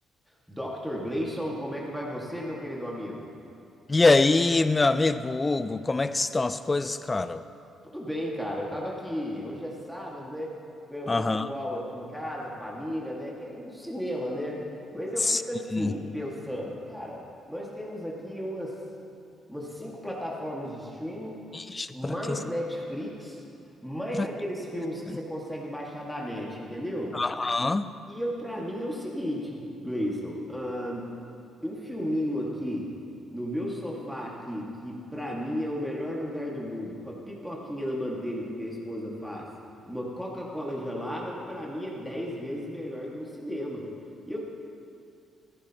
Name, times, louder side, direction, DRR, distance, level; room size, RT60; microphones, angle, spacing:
voice 1, 0.5-3.3 7.8-10.6 10.9-14.7 14.9-18.8 19.5-21.4 21.9-23.4 23.8-27.2 28.1-31.2 31.6-33.0 33.3-39.5 39.9-43.9 44.3-44.4, equal, ahead, -4 dB, 2.0 m, -34 dB
voice 2, 3.9-7.5 11.1-11.5 15.2-15.4 15.7-15.9 21.5-22.4 24.2-24.3 27.1-27.9, left 3 dB, 25° left, 13 dB, 0.5 m, -24 dB
14.5 x 14.5 x 3.0 m, 2.6 s
cardioid pair, 90°, 0 cm